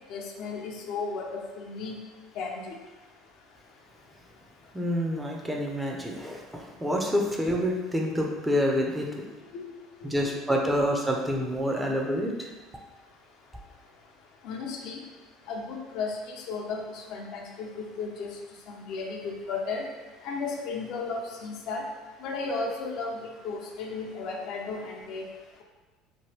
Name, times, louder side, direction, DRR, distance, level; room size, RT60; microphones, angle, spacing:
voice 1, 0.1-2.0 2.4-2.8 9.5-9.7 10.3-10.6 14.4-15.0 15.5-18.3 18.7-19.9 20.2-21.8 22.2-25.3, left 4 dB, 65° left, 1 dB, 0.5 m, -34 dB
voice 2, 4.7-9.1 10.0-12.5, equal, 10° right, 0 dB, 0.5 m, -27 dB
2.9 x 2.2 x 3.2 m, 1.2 s
hypercardioid pair, 80°, 0 cm